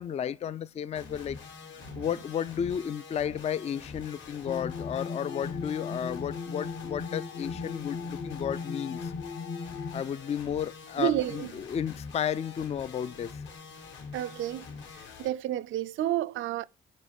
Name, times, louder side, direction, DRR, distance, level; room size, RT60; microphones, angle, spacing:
voice 1, 0.0-1.4 2.0-9.1 9.9-13.4, left 8 dB, 35° left, 0.3 m, -33 dB
sound 1, 0.9-15.3, left 5 dB, 70° left, 1.9 m, -45 dB
sound 2, 4.4-10.0, left 5 dB, 50° left, 1.0 m, -37 dB
voice 2, 11.0-11.5 14.1-14.7 15.2-16.7, right 13 dB, 80° right, 0.5 m, -30 dB
8.5 x 3.3 x 5.1 m
cardioid pair, 90°, 20 cm